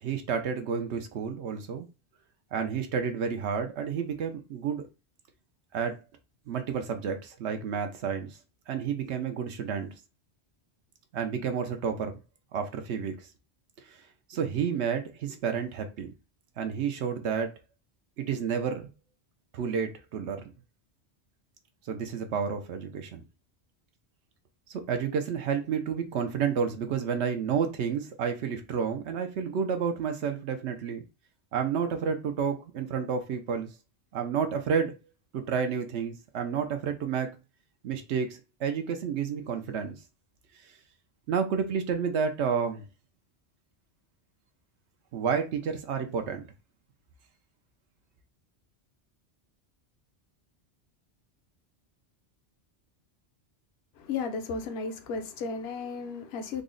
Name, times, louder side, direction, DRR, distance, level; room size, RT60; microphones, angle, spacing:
voice 1, 0.0-1.9 2.5-4.8 5.7-6.0 6.5-8.4 8.7-9.9 11.1-12.2 12.5-13.3 13.8-16.1 16.6-17.5 18.2-18.9 19.5-20.5 21.9-23.2 24.7-31.0 31.5-33.7 34.1-34.9 35.3-37.4 37.8-40.0 40.6-40.8 41.3-42.8 45.1-46.5, right 6 dB, 85° right, 0.9 m, -30 dB
voice 2, 54.0-56.6, left 4 dB, 70° left, 0.9 m, -34 dB
3.9 x 2.0 x 3.7 m
omnidirectional pair, 1.1 m